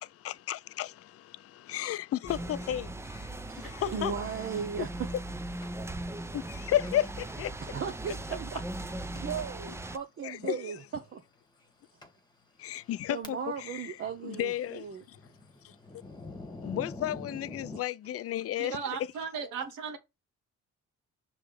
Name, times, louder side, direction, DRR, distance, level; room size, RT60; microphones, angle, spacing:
voice 1, 0.0-3.3 3.6-4.1 6.3-7.5 10.2-10.7 12.6-13.9 14.2-15.2 15.6-15.7 16.6-19.1, left 12 dB, 50° left, 0.5 m, -33 dB
sound 1, 2.3-10.0, right 1 dB, 10° right, 0.5 m, -39 dB
voice 2, 3.4-5.1 7.6-11.2 13.1-15.0, right 6 dB, 45° right, 0.8 m, -37 dB
Thunder, 5.6-5.7 6.9-7.1 7.4-7.6 8.2-8.3 9.1-9.5 9.8-10.0 10.9-11.0 11.6-11.7 12.0-12.1 12.7-13.7 14.0-17.8, left 2 dB, 15° left, 1.5 m, -45 dB
voice 3, 18.6-20.0, right 6 dB, 85° right, 1.3 m, -36 dB
5.7 x 3.2 x 5.1 m
cardioid pair, 90°, 30 cm